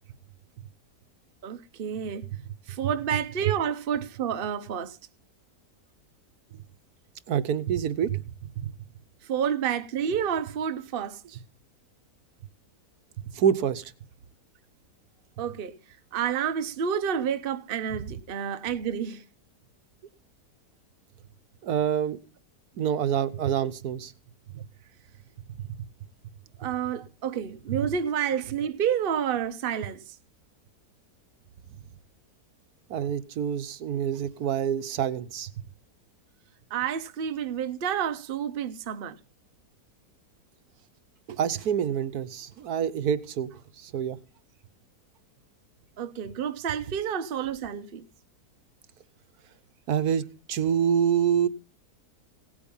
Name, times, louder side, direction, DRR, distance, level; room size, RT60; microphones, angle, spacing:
voice 1, 1.4-2.3 2.7-5.0 9.2-11.4 15.4-15.7 16.1-19.2 26.6-30.2 36.7-39.2 46.0-48.0, right 8 dB, 45° right, 0.9 m, -29 dB
voice 2, 7.3-8.2 8.6-8.7 13.3-13.9 17.9-18.0 21.6-22.2 22.8-24.1 24.5-24.6 32.9-35.6 41.3-44.2 49.9-51.5, right 8 dB, 70° right, 1.3 m, -27 dB
17.5 x 8.6 x 5.5 m
omnidirectional pair, 1.7 m